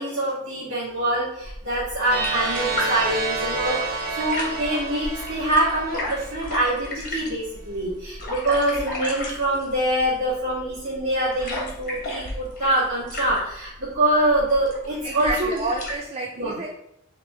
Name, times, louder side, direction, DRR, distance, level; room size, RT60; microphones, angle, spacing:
voice 1, 0.0-15.6 16.4-16.6, right 1 dB, 55° right, -13 dB, 1.6 m, -25 dB
sound 1, 1.4-16.0, left 1 dB, 40° left, 1.2 m, -35 dB
sound 2, 2.0-6.8, right 3 dB, 85° right, 0.9 m, -30 dB
voice 2, 15.0-16.7, right 3 dB, 30° right, 0 dB, 0.4 m, -29 dB
4.3 x 3.0 x 3.3 m, 0.79 s
head